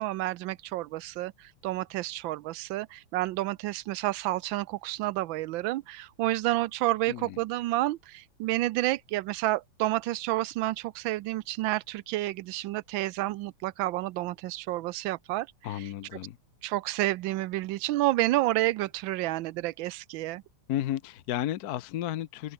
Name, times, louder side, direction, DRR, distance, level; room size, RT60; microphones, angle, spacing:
voice 1, 0.0-15.5 15.8-15.9 16.6-20.4, right 16 dB, 75° right, 1.2 m, -30 dB
voice 2, 7.1-7.4 15.6-16.4 20.7-22.5, left 12 dB, 65° left, 1.0 m, -33 dB
omnidirectional pair, 2.4 m